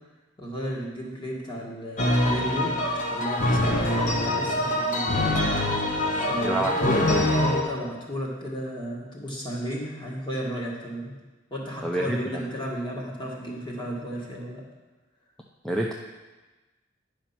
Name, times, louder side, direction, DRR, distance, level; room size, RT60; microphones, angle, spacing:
voice 1, 0.4-5.2 6.1-7.0 7.3-11.2 11.5-14.6, equal, 25° left, -4 dB, 1.9 m, -33 dB
sound 1, 2.0-7.6, left 1 dB, 40° left, 1.0 m, -24 dB
voice 2, 6.4-7.3 11.8-12.4 15.6-15.9, right 1 dB, 5° left, -1 dB, 0.5 m, -27 dB
9.9 x 5.1 x 5.9 m, 1.2 s
head